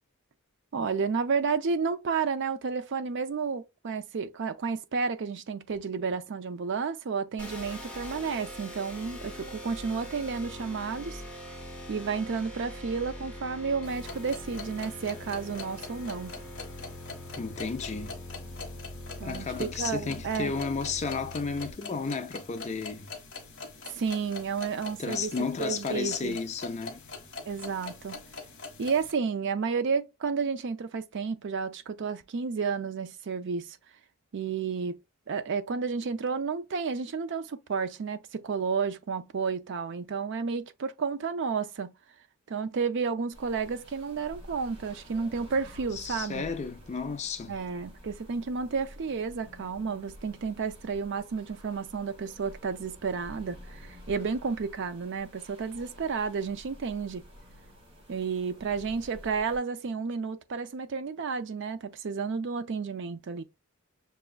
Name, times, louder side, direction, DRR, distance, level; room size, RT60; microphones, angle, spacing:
voice 1, 0.7-11.2 11.9-16.4 19.2-20.5 23.8-25.3 25.6-26.4 27.4-28.2 28.8-33.8 34.3-35.0 35.3-41.9 42.5-46.5 47.5-57.2 58.1-63.4, right 5 dB, 55° right, 0.4 m, -31 dB
sound 1, 7.4-21.7, left 1 dB, 5° left, 1.1 m, -43 dB
sound 2, 13.8-29.1, left 4 dB, 60° left, 1.0 m, -44 dB
voice 2, 17.4-18.2 19.2-23.1 25.0-27.0 45.9-47.5, left 5 dB, 30° left, 0.4 m, -33 dB
sound 3, 43.3-59.6, equal, 25° right, 1.1 m, -50 dB
6.0 x 2.3 x 2.3 m
head